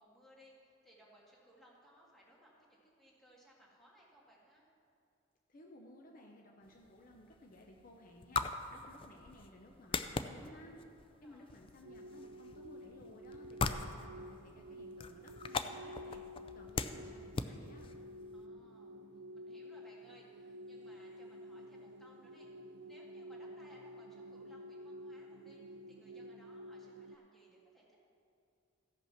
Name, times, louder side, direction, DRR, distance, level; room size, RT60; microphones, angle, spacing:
voice 1, 0.0-4.7 11.0-11.6 18.3-19.0 19.3-28.0, equal, ahead, -5 dB, 2.0 m, -63 dB
voice 2, 5.5-10.9 11.2-16.2 16.5-18.0, left 1 dB, 45° left, 0 dB, 0.8 m, -57 dB
sound 1, 6.7-18.4, left 4 dB, 30° left, 0.4 m, -42 dB
sound 2, 11.8-27.2, equal, 60° right, 0.4 m, -51 dB
15.0 x 5.6 x 5.8 m, 2.5 s
head